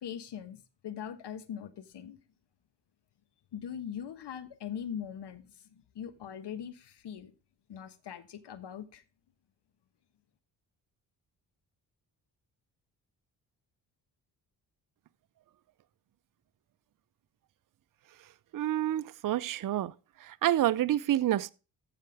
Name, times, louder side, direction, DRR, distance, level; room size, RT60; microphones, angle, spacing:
voice 1, 0.0-2.2 3.5-7.3 7.7-9.0, left 8 dB, 60° left, 1.3 m, -41 dB
voice 2, 18.5-19.9 20.3-21.5, right 12 dB, 45° right, 0.6 m, -28 dB
14.0 x 5.8 x 3.5 m
hypercardioid pair, 45°, 46 cm